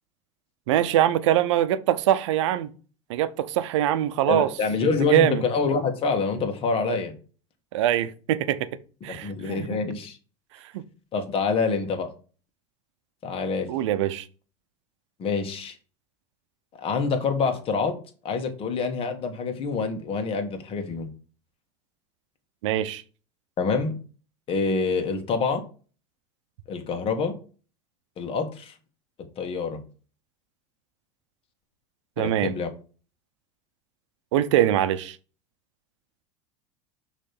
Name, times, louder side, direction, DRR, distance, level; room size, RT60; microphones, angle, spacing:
voice 1, 0.7-2.7 3.1-4.5 5.1-5.4 7.7-8.7 9.0-9.8 10.7-10.8 13.7-14.3 22.6-23.0 32.2-32.5 34.3-35.2, right 12 dB, 80° right, 0.7 m, -23 dB
voice 2, 4.3-7.1 9.1-10.2 11.1-12.1 13.2-13.7 15.2-15.7 16.8-17.9 18.2-21.1 23.6-23.9 24.5-25.6 26.7-27.3 28.2-28.7 29.4-29.8 32.2-32.7, left 4 dB, 40° left, 1.6 m, -26 dB
6.4 x 3.2 x 5.9 m
supercardioid pair, 115°, 15 cm